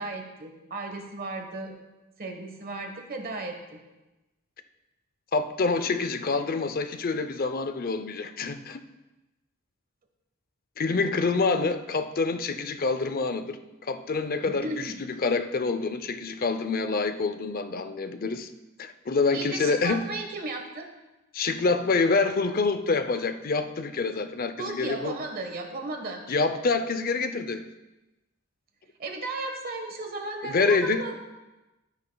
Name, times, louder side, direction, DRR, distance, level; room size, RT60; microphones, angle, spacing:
voice 1, 0.0-1.7 2.2-3.8 14.4-15.0 19.3-20.9 24.6-26.2 29.0-31.2, right 2 dB, 45° right, 4 dB, 1.3 m, -35 dB
voice 2, 5.3-8.8 10.8-14.9 15.2-18.5 18.8-20.0 21.3-25.1 26.3-27.7 30.4-31.1, left 4 dB, 45° left, 10 dB, 0.6 m, -27 dB
13.0 x 9.7 x 2.3 m, 1.0 s
head